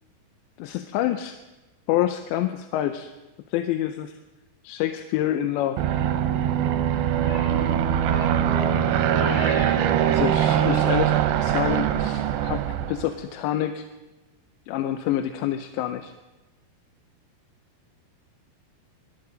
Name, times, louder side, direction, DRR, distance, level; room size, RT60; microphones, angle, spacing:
voice 1, 0.6-1.4 1.9-3.1 3.5-4.2 4.6-5.8 10.1-13.9 14.7-16.1, left 12 dB, 85° left, 8 dB, 2.9 m, -27 dB
Aircraft, 5.8-13.1, right 10 dB, 80° right, 3.0 m, -22 dB
voice 2, 7.1-9.8 10.7-10.8, left 3 dB, 50° left, 0 dB, 4.8 m, -39 dB
25.0 x 14.0 x 3.9 m, 1.1 s
omnidirectional pair, 5.0 m